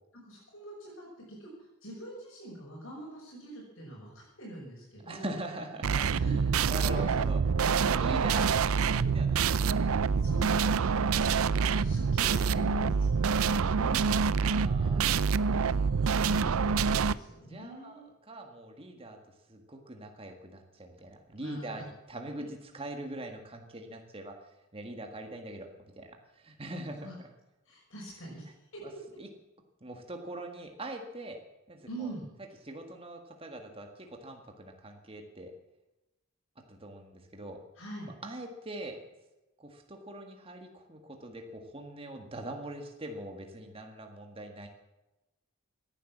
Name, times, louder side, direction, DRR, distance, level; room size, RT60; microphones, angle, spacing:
voice 1, 0.2-5.4 6.1-6.3 6.7-7.0 8.0-8.4 10.1-10.8 11.5-13.1 13.7-14.1 14.8-18.1 21.3-21.8 27.0-27.1 27.6-28.8 31.9-32.3 37.7-38.1, right 1 dB, 60° left, -4 dB, 5.9 m, -44 dB
voice 2, 5.0-6.4 6.7-7.4 7.9-9.4 14.4-15.1 17.5-18.0 18.3-19.2 19.5-22.4 22.7-24.4 24.7-25.7 25.9-27.1 29.2-29.3 29.8-31.4 31.7-32.1 32.6-35.5 36.7-37.6 38.2-39.0 39.6-44.7, right 1 dB, 25° right, 4 dB, 1.8 m, -42 dB
sound 1, 5.8-17.1, right 5 dB, 75° right, 0.5 m, -26 dB
17.0 x 10.5 x 7.3 m, 0.98 s
head